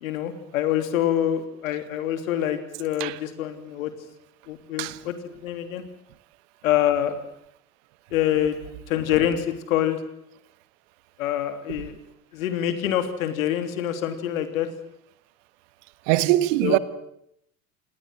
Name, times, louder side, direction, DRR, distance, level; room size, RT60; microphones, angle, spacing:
voice 1, 0.0-3.9 4.5-5.1 5.4-5.8 6.6-7.2 8.1-8.6 8.9-10.0 11.2-11.9 12.3-14.7 16.6-16.8, left 11 dB, 65° left, 3.2 m, -25 dB
voice 2, 16.1-16.8, right 16 dB, 55° right, 1.5 m, -21 dB
28.5 x 19.5 x 7.8 m
figure-of-eight pair, 70°, 43 cm